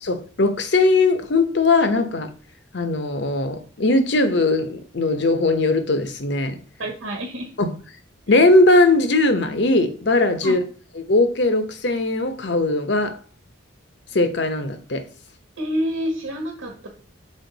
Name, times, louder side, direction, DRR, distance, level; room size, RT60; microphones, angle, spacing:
voice 1, 0.0-2.3 2.7-6.5 7.6-7.7 8.3-10.6 11.0-13.2 14.1-15.0, left 2 dB, 60° left, 0.8 m, -19 dB
voice 2, 6.8-7.5 10.4-10.6 15.6-16.9, equal, 90° right, 1.3 m, -27 dB
6.4 x 4.4 x 3.9 m
head